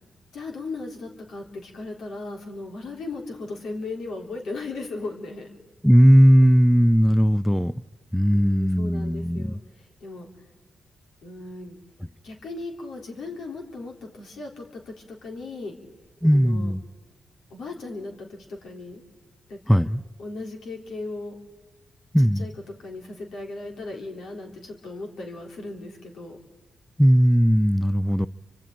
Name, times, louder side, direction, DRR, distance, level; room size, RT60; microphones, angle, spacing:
voice 1, 0.3-5.5 8.3-10.3 11.2-11.8 12.2-15.7 16.3-16.7 17.5-19.0 19.5-19.8 20.2-21.3 22.4-22.5 22.8-26.4, left 3 dB, 70° left, 3.6 m, -37 dB
voice 2, 5.8-7.7 8.1-9.6 16.2-16.8 19.7-20.0 22.1-22.5 27.0-28.3, equal, 5° left, 0.6 m, -18 dB
30.0 x 25.5 x 3.9 m
hypercardioid pair, 40°, 0 cm